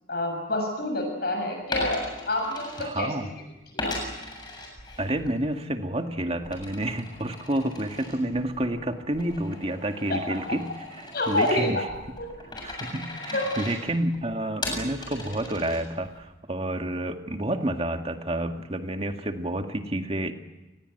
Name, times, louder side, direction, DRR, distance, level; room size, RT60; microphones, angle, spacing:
voice 1, 0.1-2.0 2.3-2.7 3.0-3.1 3.7-3.9 10.1-10.2 10.5-10.6 11.1-11.8 13.3-13.4, left 1 dB, 55° left, 3 dB, 7.1 m, -27 dB
Coin (dropping), 1.6-3.3 3.8-5.4 5.7-16.2, left 2 dB, 25° left, 7.4 m, -38 dB
voice 2, 2.8-3.3 5.0-11.9 12.6-20.3, right 1 dB, 30° right, 5 dB, 2.0 m, -29 dB
29.0 x 21.0 x 8.0 m, 1.1 s
head